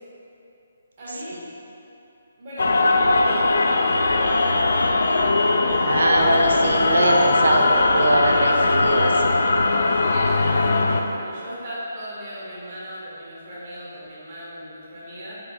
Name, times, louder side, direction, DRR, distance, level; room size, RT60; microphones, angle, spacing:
voice 1, 1.0-1.5 2.4-4.8 10.0-15.4, equal, 40° right, -8 dB, 1.2 m, -37 dB
sound 1, 2.6-11.0, left 2 dB, 75° left, 0.3 m, -20 dB
voice 2, 5.8-9.1, right 1 dB, 85° right, 1 dB, 0.5 m, -21 dB
4.3 x 2.8 x 4.0 m, 2.9 s
hypercardioid pair, 165°, 0 cm